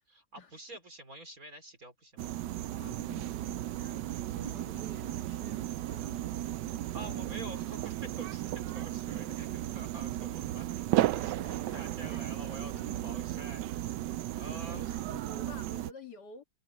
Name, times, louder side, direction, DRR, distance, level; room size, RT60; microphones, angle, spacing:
voice 1, 0.1-2.4 6.8-14.1 14.4-15.1, right 1 dB, 50° right, 3.9 m, -48 dB
sound 1, 2.2-15.9, right 14 dB, 90° right, 1.3 m, -35 dB
voice 2, 2.8-6.4 7.0-7.3 11.4-12.2 14.7-16.4, left 4 dB, 65° left, 2.5 m, -51 dB
sound 2, 7.0-8.6 9.2-10.7 11.4-13.0, left 6 dB, 85° left, 2.2 m, -59 dB
omnidirectional pair, 1.9 m